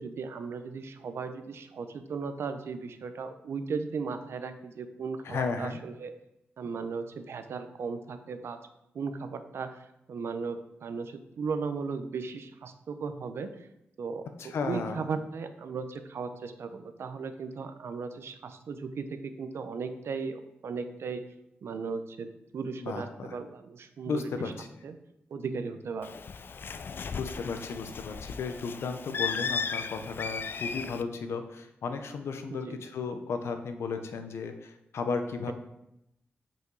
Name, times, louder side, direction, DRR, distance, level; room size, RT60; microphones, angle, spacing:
voice 1, 0.0-6.1 6.6-8.6 8.9-13.7 14.0-14.3 14.6-21.2 21.6-24.5 24.8-25.0 25.3-26.1 32.5-32.8, right 5 dB, 75° right, 9 dB, 0.7 m, -36 dB
voice 2, 5.2-5.8 14.4-15.0 22.8-23.3 24.1-24.7 27.1-35.5, left 5 dB, 85° left, 7 dB, 0.8 m, -34 dB
Bird, 26.0-31.0, left 5 dB, 55° left, 0.4 m, -36 dB
8.2 x 5.1 x 3.9 m, 0.84 s
cardioid pair, 90°, 4 cm